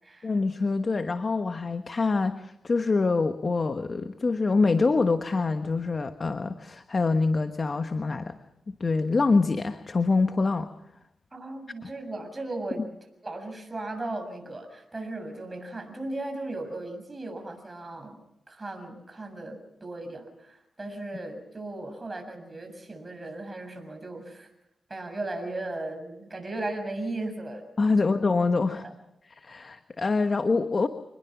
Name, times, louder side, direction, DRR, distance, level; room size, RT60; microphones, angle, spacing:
voice 1, 0.2-8.4 8.8-10.7 11.8-11.9 27.8-28.8 29.3-30.9, left 3 dB, 45° left, 8 dB, 1.2 m, -25 dB
voice 2, 11.3-12.9 13.2-18.2 18.5-24.5 24.9-27.7 28.0-28.1 28.8-28.9, right 2 dB, 25° right, 5 dB, 7.0 m, -36 dB
26.5 x 21.0 x 6.0 m, 0.86 s
cardioid pair, 65°, 0 cm